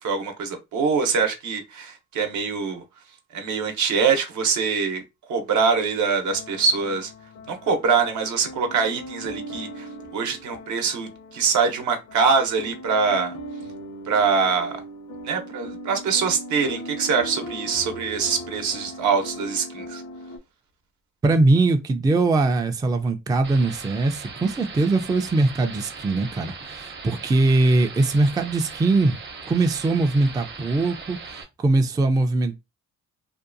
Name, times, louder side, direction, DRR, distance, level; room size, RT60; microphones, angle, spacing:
voice 1, 0.0-2.8 3.3-5.0 5.3-7.1 7.5-13.4 14.1-14.8 15.2-20.0, right 5 dB, 75° right, 0.8 m, -24 dB
sound 1, 6.3-20.4, equal, 75° left, 0.8 m, -39 dB
voice 2, 21.2-29.2 29.5-32.6, right 2 dB, 15° right, 0.3 m, -21 dB
sound 2, 23.4-31.4, right 4 dB, 35° right, 0.7 m, -39 dB
2.6 x 2.2 x 2.5 m
cardioid pair, 90°, 30 cm